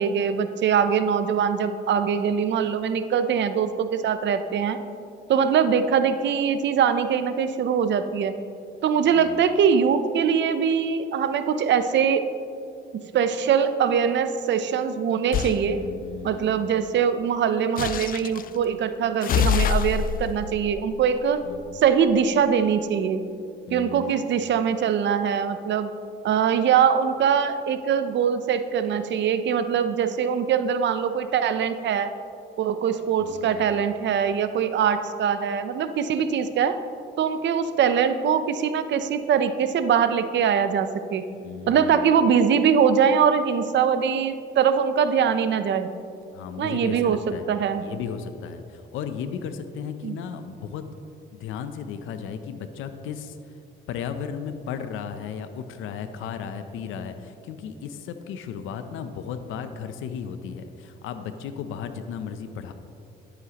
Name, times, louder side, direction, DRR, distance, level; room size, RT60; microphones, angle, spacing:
voice 1, 0.0-4.8 5.3-8.3 8.8-12.2 13.1-15.8 16.2-21.4 21.8-23.2 23.7-25.9 26.2-32.1 32.6-36.8 37.2-41.2 41.7-45.9 46.6-47.2 47.5-47.8 50.0-50.1, right 7 dB, 65° right, 10 dB, 0.6 m, -22 dB
sound 1, 15.3-15.6 17.8-18.5 19.2-21.8, left 8 dB, 45° left, 0.4 m, -26 dB
voice 2, 15.6-16.7 21.4-21.8 23.7-24.3 33.2-33.7 41.4-41.9 46.3-47.5 47.8-50.8 51.3-53.4 53.9-62.7, left 7 dB, 85° left, 9 dB, 0.6 m, -35 dB
11.5 x 9.9 x 2.9 m, 2.5 s
cardioid pair, 90°, 20 cm